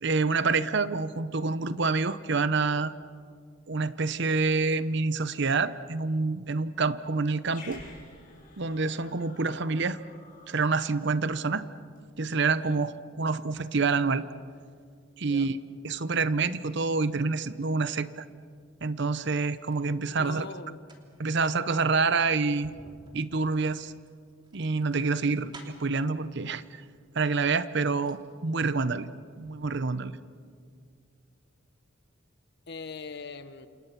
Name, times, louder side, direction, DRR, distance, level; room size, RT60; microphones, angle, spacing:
voice 1, 0.0-2.9 3.7-7.8 8.6-10.0 10.5-11.7 12.2-12.9 13.2-14.2 15.2-15.6 15.8-18.3 18.8-20.5 21.2-22.7 23.1-23.9 24.5-26.6 27.1-29.1 29.4-30.1, right 4 dB, 60° right, 14 dB, 0.8 m, -27 dB
Growling, 7.4-12.1, left 3 dB, 40° left, 6.2 m, -52 dB
sound 1, 19.0-19.9 20.6-26.0 27.0-27.1 27.5-28.3 28.6-28.7, right 1 dB, 25° right, 3.0 m, -52 dB
voice 2, 20.1-20.9 32.7-33.7, left 4 dB, 60° left, 11 dB, 1.2 m, -41 dB
29.5 x 27.5 x 5.9 m, 2.2 s
head